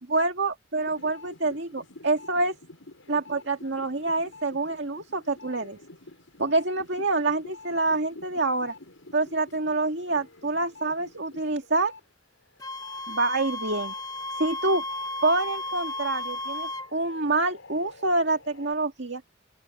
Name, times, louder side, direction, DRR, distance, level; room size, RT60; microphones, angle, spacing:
voice 1, 0.1-2.5 3.1-5.8 6.4-8.7 9.1-11.9 13.1-13.9 14.4-14.8 15.2-19.2, right 2 dB, 60° right, 2.1 m, -26 dB
sound 1, 0.7-12.0 12.4-18.7, left 2 dB, 85° left, 5.6 m, -49 dB
Wind instrument woodwind instrument, 12.6-16.9, left 2 dB, 20° left, 1.5 m, -34 dB
open air
head